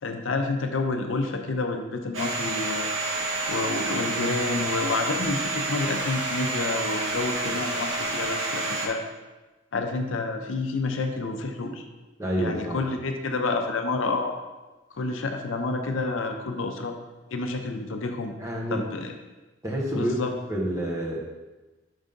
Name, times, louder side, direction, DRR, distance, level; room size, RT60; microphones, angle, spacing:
voice 1, 0.0-3.0 3.5-9.0 9.7-11.9 12.4-14.3 14.9-17.0 17.3-18.4 18.7-19.1 19.9-20.3, left 3 dB, 70° left, 5 dB, 0.6 m, -29 dB
Domestic sounds home sounds, 2.1-8.9, right 2 dB, 75° right, 1.0 m, -29 dB
voice 2, 12.2-12.8 18.4-18.8 19.6-20.1 20.5-21.2, equal, 15° right, -3 dB, 1.0 m, -28 dB
5.5 x 3.6 x 5.2 m, 1.1 s
head